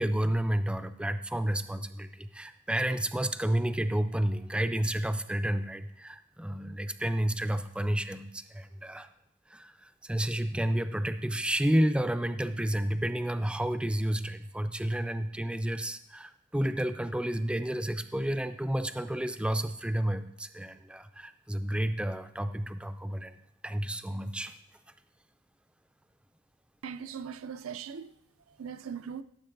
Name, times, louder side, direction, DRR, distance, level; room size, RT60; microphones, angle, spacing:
voice 1, 0.0-9.1 9.5-23.3 23.6-24.5, right 1 dB, 5° right, 0.4 m, -31 dB
voice 2, 26.8-28.1 28.5-29.2, right 7 dB, 85° right, 0.5 m, -40 dB
15.5 x 7.2 x 3.9 m
head